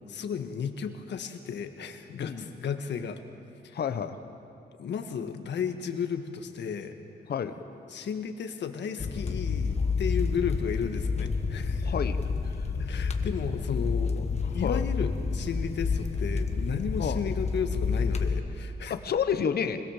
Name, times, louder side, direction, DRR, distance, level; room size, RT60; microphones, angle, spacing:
voice 1, 0.1-3.2 3.6-3.8 4.8-7.0 7.9-11.9 12.8-14.3 14.5-19.0, left 7 dB, 80° left, 7 dB, 1.6 m, -34 dB
voice 2, 2.2-2.5 3.7-4.2 7.3-7.5 11.8-12.2 14.5-14.8 17.0-17.2 18.9-19.8, left 7 dB, 60° left, 10 dB, 1.2 m, -29 dB
sound 1, 9.0-18.4, left 4 dB, 35° left, 1.3 m, -29 dB
25.5 x 21.0 x 7.3 m, 2.7 s
wide cardioid pair, 155°, 18 cm